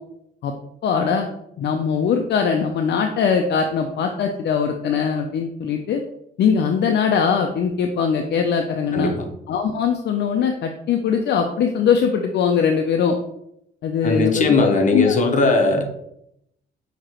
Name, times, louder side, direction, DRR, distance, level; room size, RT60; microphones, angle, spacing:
voice 1, 0.8-1.3 1.6-6.0 6.4-9.1 9.5-13.2 13.8-15.1, left 6 dB, 60° left, 4 dB, 0.5 m, -21 dB
voice 2, 8.9-9.2 14.0-15.9, left 3 dB, 40° left, 3 dB, 0.9 m, -18 dB
6.0 x 2.9 x 2.9 m, 0.78 s
cardioid pair, 90°, 20 cm